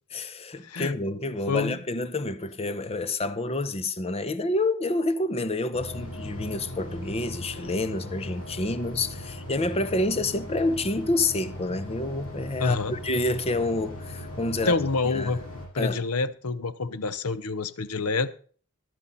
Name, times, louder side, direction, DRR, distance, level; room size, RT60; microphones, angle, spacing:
voice 1, 0.1-14.8 15.0-15.3 15.8-16.1, left 2 dB, 30° left, 0.7 m, -28 dB
voice 2, 1.5-1.8 12.6-12.9 14.6-15.4 15.7-18.3, left 3 dB, 85° left, 0.8 m, -27 dB
sound 1, 5.7-15.7, left 1 dB, 70° left, 7.0 m, -39 dB
12.5 x 12.0 x 4.1 m
head